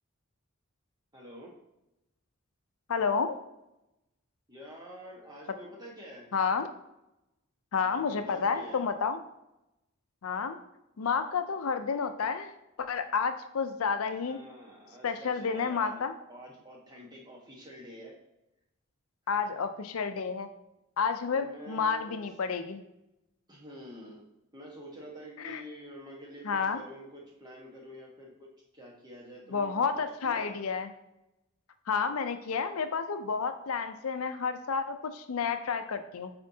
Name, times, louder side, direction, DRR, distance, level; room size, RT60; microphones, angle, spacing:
voice 1, 1.1-1.5 4.5-6.3 7.8-8.9 14.2-16.0 16.3-18.2 19.3-19.5 21.3-22.2 23.5-24.2 24.5-28.5 28.7-30.6, equal, 20° right, -2 dB, 1.3 m, -47 dB
voice 2, 2.9-3.4 6.3-6.7 7.7-9.2 10.2-10.6 11.0-12.5 12.8-14.4 15.0-16.1 19.3-20.5 21.0-22.8 25.4-25.6 26.4-26.8 29.5-30.9 31.9-36.3, left 5 dB, 80° left, 9 dB, 0.5 m, -30 dB
8.7 x 4.3 x 2.8 m, 0.91 s
head